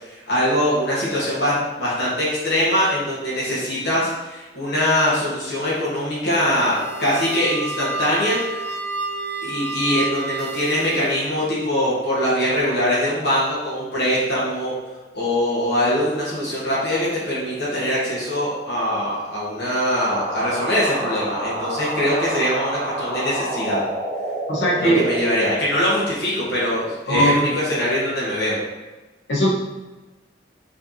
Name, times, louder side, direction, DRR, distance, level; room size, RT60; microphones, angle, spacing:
voice 1, 0.0-8.7 9.4-14.7 15.1-23.8 24.7-28.6, equal, 60° left, -7 dB, 1.2 m, -22 dB
sound 1, 6.4-11.3, right 3 dB, 60° right, 0.7 m, -30 dB
sound 2, 20.0-25.2, right 1 dB, 40° right, 1.2 m, -28 dB
voice 2, 24.5-25.1 27.1-27.5 29.3-29.5, right 1 dB, 80° left, -5 dB, 1.0 m, -19 dB
4.8 x 3.3 x 2.7 m, 1.2 s
head